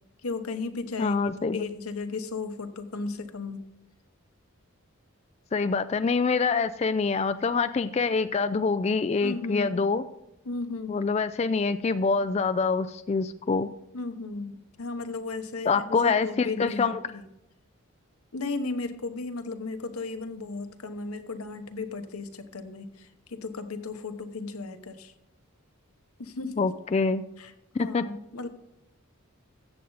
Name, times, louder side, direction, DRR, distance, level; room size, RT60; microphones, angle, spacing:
voice 1, 0.2-1.2 1.5-3.6 9.2-9.8 10.4-11.1 13.9-17.2 18.3-25.1 26.2-26.7 27.4-27.5 27.8-28.5, left 3 dB, 90° left, 8 dB, 1.0 m, -35 dB
voice 2, 1.0-1.6 5.5-10.0 10.9-13.7 15.7-17.0 26.6-27.2 27.7-28.1, left 4 dB, 30° left, 11 dB, 0.3 m, -25 dB
14.0 x 7.9 x 4.0 m, 0.89 s
head